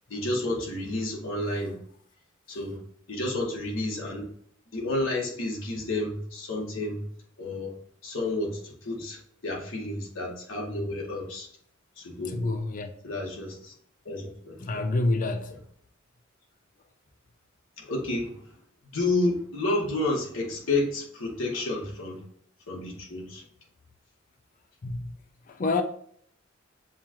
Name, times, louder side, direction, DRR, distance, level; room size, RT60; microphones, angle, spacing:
voice 1, 0.1-1.8 2.5-2.8 3.1-4.3 4.7-7.0 7.4-7.7 8.0-11.5 12.0-12.4 13.0-13.7 14.0-14.8 15.5-15.6 17.8-18.5 18.9-22.2 22.7-23.4, left 2 dB, 90° left, 1.4 m, -30 dB
voice 2, 12.3-12.9 14.6-15.5 24.8-25.1 25.6-25.8, left 2 dB, 40° left, 0.4 m, -27 dB
7.1 x 2.4 x 2.9 m
head